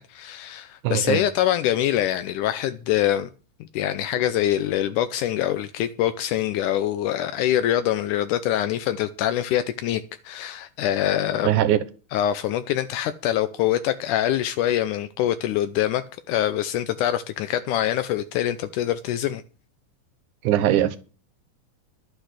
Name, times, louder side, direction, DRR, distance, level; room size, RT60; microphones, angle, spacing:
voice 1, 0.0-3.3 3.6-11.6 12.1-19.4, left 12 dB, 80° left, 2.1 m, -24 dB
voice 2, 0.8-1.2 11.4-11.8 20.4-21.0, right 12 dB, 75° right, 2.4 m, -20 dB
11.5 x 8.1 x 6.5 m
omnidirectional pair, 3.7 m